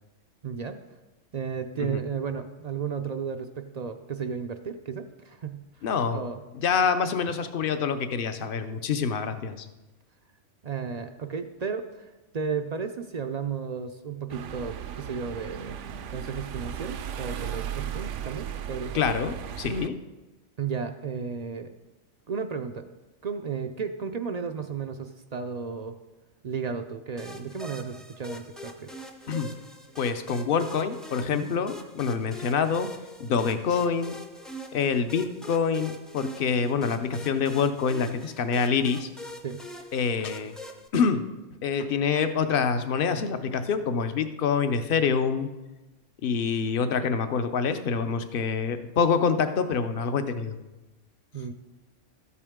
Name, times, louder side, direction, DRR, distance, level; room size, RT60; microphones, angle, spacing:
voice 1, 0.4-0.8 1.3-5.6 6.1-6.4 10.6-15.8 16.1-18.9 20.6-21.7 22.3-22.8 23.2-26.0 26.4-28.9 31.3-31.5 39.4-39.6 51.3-51.5, right 6 dB, 55° right, 7 dB, 0.4 m, -34 dB
voice 2, 5.8-6.2 6.5-9.7 18.9-19.9 29.3-29.5 30.0-32.9 33.2-34.2 34.7-39.1 39.9-40.5 40.9-41.2 41.6-45.5 46.2-50.6, left 6 dB, 55° left, 9 dB, 0.8 m, -26 dB
sound 1, 14.3-19.9, right 9 dB, 75° right, 0.9 m, -36 dB
sound 2, 27.2-40.9, equal, ahead, 0.5 m, -43 dB
13.0 x 8.4 x 3.6 m, 1.1 s
omnidirectional pair, 1.3 m